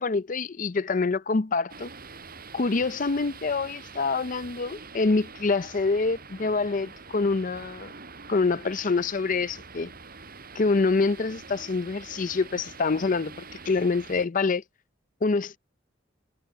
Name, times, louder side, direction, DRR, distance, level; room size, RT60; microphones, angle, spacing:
voice 1, 0.0-1.9 2.5-7.9 8.3-9.9 10.5-13.3 13.7-14.6 15.2-15.6, left 4 dB, 45° left, 0.6 m, -26 dB
sound 1, 1.7-14.3, right 4 dB, 50° right, 6.5 m, -45 dB
head